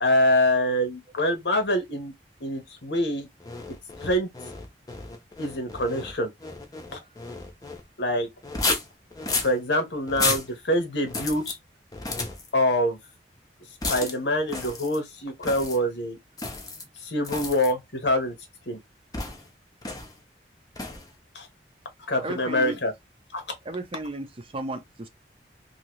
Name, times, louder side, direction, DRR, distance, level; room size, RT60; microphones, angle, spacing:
voice 1, 0.0-2.1 2.4-3.3 4.0-4.3 5.4-6.3 6.9-7.0 8.0-8.3 9.4-11.5 12.5-13.0 13.9-16.2 17.0-18.3 18.7-18.8 21.3-21.5 22.1-22.9 23.3-23.4, left 1 dB, 85° left, 1.1 m, -25 dB
sound 1, 3.4-7.8 8.4-9.6 10.1-10.5 11.1-11.6 11.9-12.5 13.8-14.2 14.5-15.0 15.4-15.8 16.4-16.8 17.2-17.7 19.1-19.5 19.8-20.2 20.8-21.1, left 3 dB, 20° left, 0.6 m, -32 dB
voice 2, 22.2-22.8 23.6-25.1, right 2 dB, 30° right, 0.5 m, -34 dB
2.8 x 2.8 x 2.9 m
head